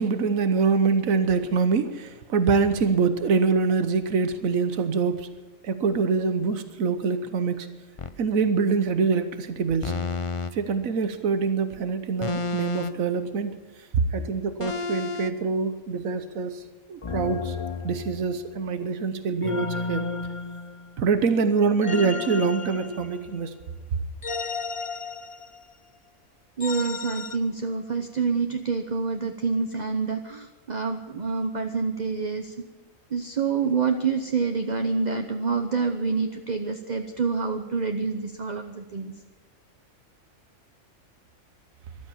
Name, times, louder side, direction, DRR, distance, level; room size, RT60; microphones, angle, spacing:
voice 1, 0.0-5.3 5.6-7.7 8.2-9.9 10.5-13.6 13.9-16.6 16.9-17.6 17.8-20.0 21.0-23.5, right 5 dB, 85° right, 10 dB, 1.4 m, -24 dB
sound 1, 8.0-8.2 9.8-10.5 12.2-13.1 14.6-15.3 17.0-18.5 19.4-21.0 21.8-23.5 24.2-25.7 26.6-27.4, left 4 dB, 35° left, 0.5 m, -32 dB
voice 2, 26.6-32.5 33.1-39.1, right 5 dB, 35° right, 6 dB, 0.9 m, -27 dB
14.0 x 13.0 x 7.1 m, 1.2 s
omnidirectional pair, 1.4 m